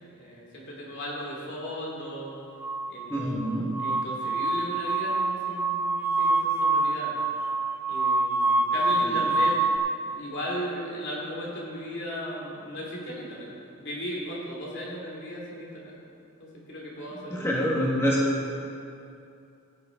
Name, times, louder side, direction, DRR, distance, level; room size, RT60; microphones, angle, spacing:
voice 1, 0.0-2.3 2.9-7.2 7.9-9.6 10.0-13.5 13.8-15.9 16.4-17.5, equal, 50° left, -3 dB, 2.6 m, -36 dB
sound 1, 2.6-9.8, right 3 dB, 10° right, 0.5 m, -26 dB
voice 2, 3.1-3.7 9.0-9.2 17.3-18.2, equal, 10° left, -5 dB, 1.8 m, -26 dB
15.0 x 8.9 x 3.9 m, 2.6 s
head